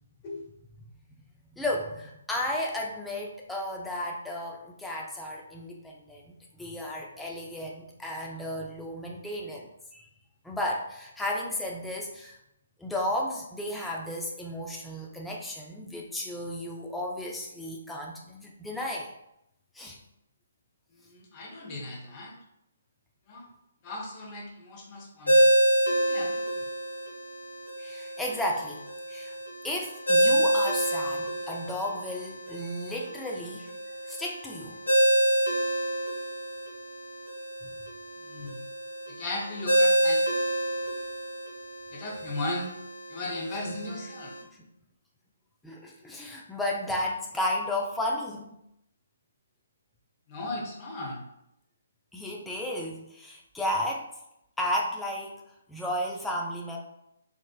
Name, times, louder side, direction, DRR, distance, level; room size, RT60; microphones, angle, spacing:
voice 1, 1.6-10.0 10.4-12.4 12.8-19.1 19.7-20.0 27.8-28.8 29.1-29.4 29.6-33.7 34.1-34.8 43.6-43.7 45.6-48.5 52.1-54.1 54.6-55.4 55.7-56.8, left 1 dB, 5° left, -2 dB, 0.4 m, -33 dB
voice 2, 20.9-22.4 23.3-23.5 23.8-25.6 26.0-26.5 38.2-38.6 39.1-40.2 41.9-42.7 43.1-44.3 50.3-51.2, left 2 dB, 30° left, -1 dB, 0.8 m, -37 dB
Ringtone, 25.3-44.4, right 1 dB, 80° left, 1.1 m, -28 dB
3.7 x 2.4 x 2.3 m, 0.80 s
figure-of-eight pair, 135°, 0 cm